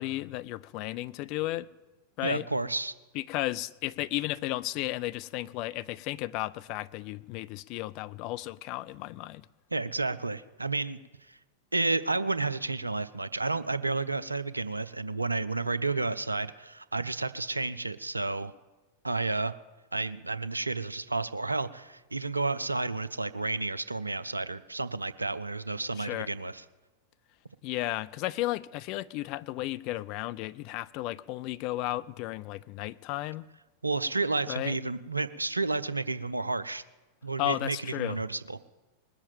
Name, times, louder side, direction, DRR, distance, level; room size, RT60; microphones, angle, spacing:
voice 1, 0.0-1.7 2.2-2.5 3.1-9.5 26.0-26.3 27.6-33.5 34.5-34.8 37.4-38.2, left 17 dB, 40° left, 0.4 m, -34 dB
voice 2, 2.2-2.9 9.7-11.0 11.3-11.4 11.7-18.5 19.0-19.5 19.9-26.6 33.8-36.8 37.2-38.6, right 3 dB, 80° right, 0.5 m, -31 dB
20.0 x 7.3 x 7.7 m
figure-of-eight pair, 90°, 0 cm